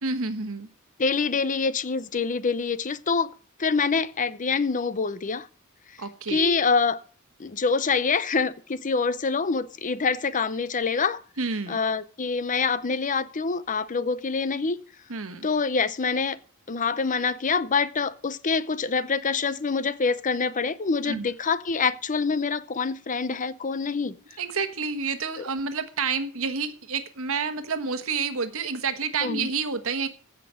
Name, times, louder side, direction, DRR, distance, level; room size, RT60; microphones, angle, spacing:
voice 1, 0.0-0.7 6.0-6.6 11.4-11.8 15.1-15.5 21.0-21.2 24.4-30.1, right 5 dB, 65° right, 1.3 m, -29 dB
voice 2, 1.0-3.3 3.6-5.5 6.3-7.0 7.4-11.2 11.7-14.8 15.4-16.4 16.7-24.2 29.2-29.5, left 4 dB, 35° left, 0.6 m, -25 dB
15.5 x 6.0 x 6.2 m
head